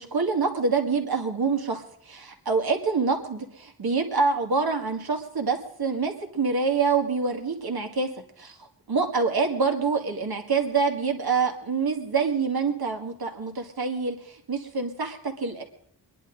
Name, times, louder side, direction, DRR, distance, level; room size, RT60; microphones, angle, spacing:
voice 1, 0.0-8.1 8.4-8.6 8.9-15.6, right 4 dB, 60° right, 4 dB, 2.1 m, -26 dB
25.0 x 11.0 x 3.9 m, 0.68 s
wide cardioid pair, 105°, 41 cm